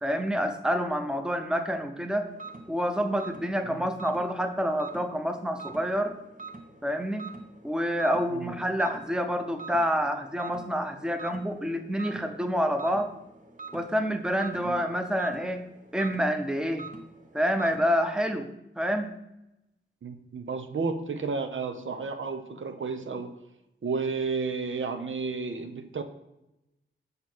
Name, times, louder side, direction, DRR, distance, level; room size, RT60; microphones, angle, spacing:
voice 1, 0.0-2.3 2.7-6.1 6.8-7.3 7.6-13.1 13.7-15.6 15.9-16.9 17.3-18.5 18.8-19.1, equal, 5° right, 7 dB, 0.7 m, -28 dB
sound 1, 2.3-17.9, right 4 dB, 40° right, 1.1 m, -46 dB
voice 2, 20.0-23.3 23.8-26.0, right 4 dB, 80° right, 7 dB, 0.9 m, -32 dB
6.8 x 5.5 x 6.2 m, 0.89 s
wide cardioid pair, 110°, 20 cm